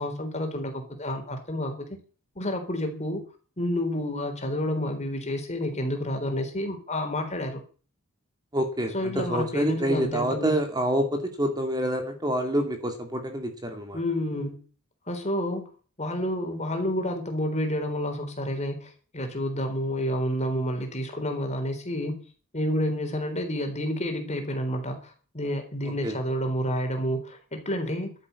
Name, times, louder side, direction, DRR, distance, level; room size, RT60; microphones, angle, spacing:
voice 1, 0.0-1.9 2.4-3.2 3.6-7.6 8.9-10.5 13.9-14.6 15.1-15.7 16.0-22.3 22.5-28.1, left 1 dB, 30° left, 5 dB, 3.9 m, -29 dB
voice 2, 8.5-14.0 26.0-26.2, right 1 dB, 20° right, 5 dB, 2.4 m, -27 dB
12.5 x 9.7 x 8.3 m, 0.39 s
head